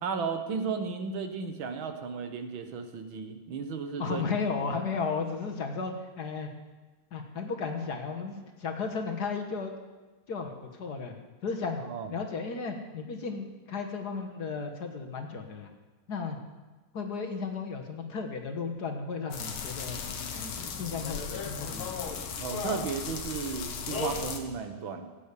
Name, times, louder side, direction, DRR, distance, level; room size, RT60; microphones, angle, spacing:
voice 1, 0.0-4.2 11.8-12.1 22.4-25.1, right 5 dB, 75° right, 7 dB, 2.0 m, -34 dB
voice 2, 4.0-6.5 7.1-9.7 10.3-11.1 11.4-11.8 12.1-15.7 16.1-16.4 16.9-20.0 20.3-21.9, left 5 dB, 55° left, 4 dB, 1.8 m, -34 dB
sound 1, 19.3-24.4, left 5 dB, 85° left, 2.2 m, -36 dB
15.0 x 8.3 x 8.3 m, 1.2 s
omnidirectional pair, 2.2 m